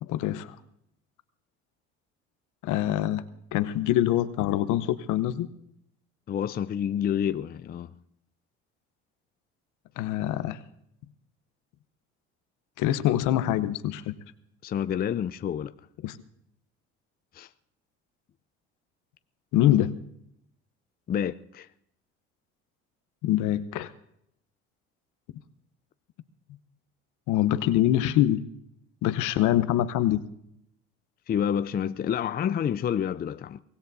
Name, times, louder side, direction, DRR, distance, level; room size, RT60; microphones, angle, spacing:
voice 1, 0.0-0.5 2.6-3.2 3.5-5.5 10.0-10.6 12.8-14.1 16.0-16.2 19.5-19.9 23.2-23.9 27.3-28.4 29.0-30.2, left 13 dB, 65° left, 0.9 m, -24 dB
voice 2, 6.3-7.9 14.6-15.7 17.3-17.5 21.1-21.7 31.3-33.6, left 9 dB, 30° left, 0.5 m, -28 dB
23.5 x 17.5 x 2.7 m
hypercardioid pair, 70°, 33 cm